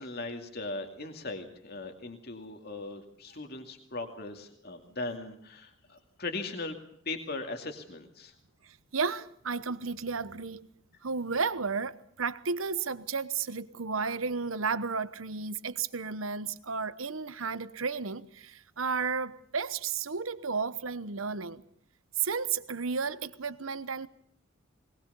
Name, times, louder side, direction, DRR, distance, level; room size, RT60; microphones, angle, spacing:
voice 1, 0.0-6.8 7.1-8.3, left 2 dB, 50° left, 2.5 m, -39 dB
voice 2, 8.6-10.7 11.0-21.6 22.2-24.1, right 5 dB, 90° right, 1.0 m, -33 dB
21.0 x 20.0 x 6.9 m
head